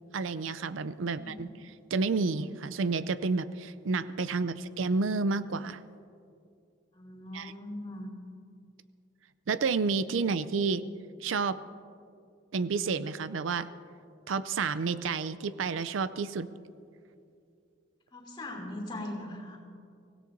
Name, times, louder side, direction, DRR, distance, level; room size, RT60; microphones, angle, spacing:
voice 1, 0.1-1.5 1.9-5.8 7.3-7.5 9.5-10.9 11.2-11.6 12.5-13.7 14.3-16.5, right 4 dB, 80° right, 14 dB, 0.5 m, -30 dB
voice 2, 1.0-1.5 6.9-8.1 18.1-19.6, left 1 dB, 25° left, -1 dB, 2.9 m, -40 dB
24.0 x 17.0 x 2.7 m, 2.4 s
head